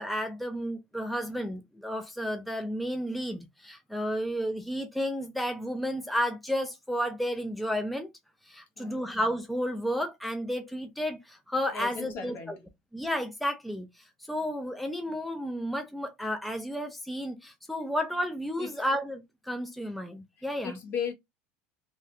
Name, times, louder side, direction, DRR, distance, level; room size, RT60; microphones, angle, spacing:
voice 1, 0.0-8.1 8.5-12.6 12.9-20.8, equal, ahead, 0.5 m, -32 dB
voice 2, 8.8-9.1 11.7-12.5 18.6-18.7 20.6-21.1, left 6 dB, 50° left, 1.2 m, -36 dB
3.3 x 2.3 x 2.7 m
supercardioid pair, 115°, 5 cm